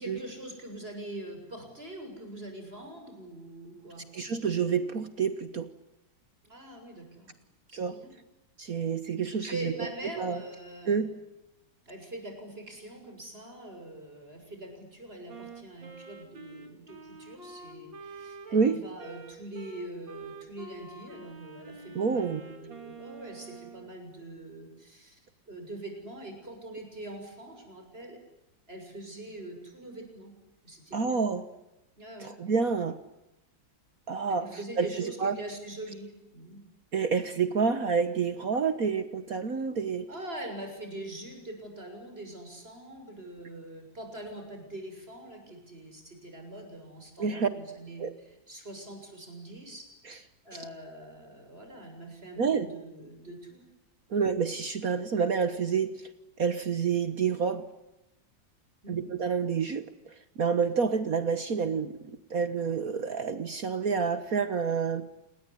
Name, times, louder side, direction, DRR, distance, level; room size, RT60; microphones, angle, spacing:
voice 1, 0.0-4.0 6.4-7.4 7.7-8.1 9.4-11.0 11.9-25.2 25.5-28.2 28.7-30.3 30.6-31.2 32.0-32.4 34.3-36.6 40.1-49.9 50.4-53.6 54.1-54.2 58.8-59.1, right 1 dB, 30° right, 4 dB, 7.5 m, -43 dB
voice 2, 4.1-5.7 7.7-8.0 8.6-9.9 10.2-10.4 10.9-11.1 18.5-18.8 21.9-22.4 30.9-31.4 32.2-33.0 34.1-34.5 34.8-35.4 36.9-40.1 47.2-47.5 48.0-48.1 52.4-52.7 54.1-56.1 56.4-57.6 58.9-65.1, right 5 dB, 55° right, 12 dB, 1.6 m, -28 dB
Wind instrument woodwind instrument, 15.3-23.9, right 3 dB, 80° right, 3.9 m, -47 dB
28.0 x 21.0 x 10.0 m, 0.94 s
omnidirectional pair, 2.0 m